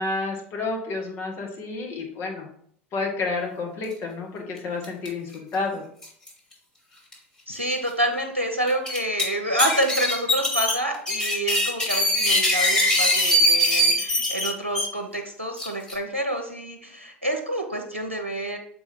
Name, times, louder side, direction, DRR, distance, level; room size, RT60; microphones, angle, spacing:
voice 1, 0.0-2.5 2.9-5.8, left 3 dB, 35° left, 0 dB, 1.6 m, -30 dB
sound 1, 4.8-5.1 5.3-5.4 6.0-6.3 7.1-7.2 7.7-7.8 8.7-9.2 9.6-14.8 15.6-15.9, equal, 10° left, 2.6 m, -22 dB
voice 2, 7.5-18.6, right 1 dB, 90° right, 6 dB, 0.7 m, -28 dB
6.7 x 4.4 x 3.6 m, 0.64 s
figure-of-eight pair, 80°, 7 cm